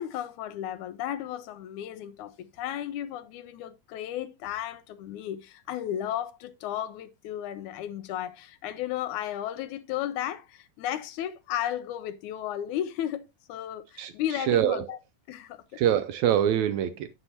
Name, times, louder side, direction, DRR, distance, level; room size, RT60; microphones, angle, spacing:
voice 1, 0.0-15.0 15.3-15.8, left 11 dB, 80° left, 1.9 m, -34 dB
voice 2, 14.0-14.9 15.7-17.1, right 10 dB, 80° right, 1.7 m, -25 dB
9.8 x 7.5 x 2.8 m
omnidirectional pair, 3.7 m